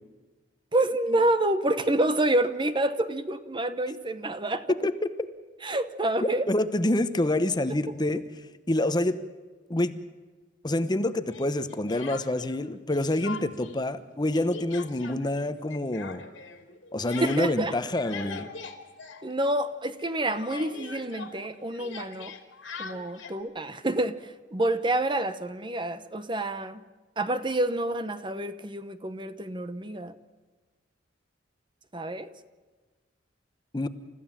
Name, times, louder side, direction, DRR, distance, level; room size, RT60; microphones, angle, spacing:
voice 1, 0.7-4.7 5.6-6.5 17.2-17.7 19.2-22.3 22.8-26.8 27.2-30.2 31.9-32.3, right 1 dB, 25° right, 1.0 m, -28 dB
voice 2, 6.5-8.2 8.7-9.2 9.7-10.0 10.6-16.2 16.9-18.5 33.7-33.9, left 1 dB, 25° left, 1.0 m, -27 dB
Speech, 11.3-12.6 12.9-13.8 14.0-19.7 20.0-23.4, left 5 dB, 85° left, 2.9 m, -42 dB
30.0 x 14.5 x 7.4 m
head